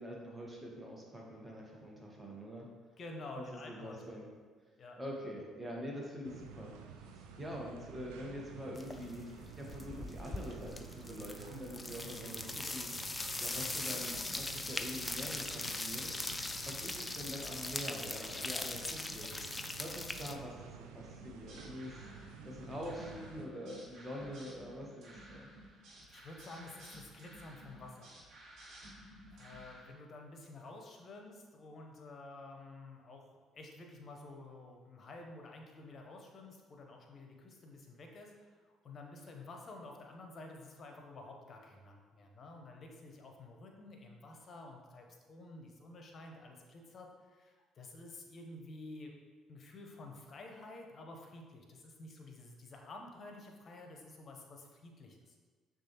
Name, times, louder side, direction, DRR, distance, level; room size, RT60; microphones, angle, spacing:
voice 1, 0.0-2.7 3.4-4.3 5.0-6.7 7.1-13.1 13.4-19.3 19.8-25.5, equal, 15° right, -2 dB, 1.2 m, -45 dB
voice 2, 3.0-4.0 4.8-5.0 16.5-16.7 26.1-28.2 29.3-33.3 33.5-49.2 49.5-55.3, left 2 dB, 45° left, 2 dB, 0.7 m, -51 dB
sound 1, 6.2-23.5, right 6 dB, 75° right, 0.3 m, -51 dB
sound 2, 8.8-9.1 9.4-20.4, left 2 dB, 20° left, 0.3 m, -40 dB
sound 3, 21.2-29.9, right 1 dB, 60° right, 1.0 m, -55 dB
6.0 x 2.4 x 2.9 m, 1.5 s
hypercardioid pair, 55°, 0 cm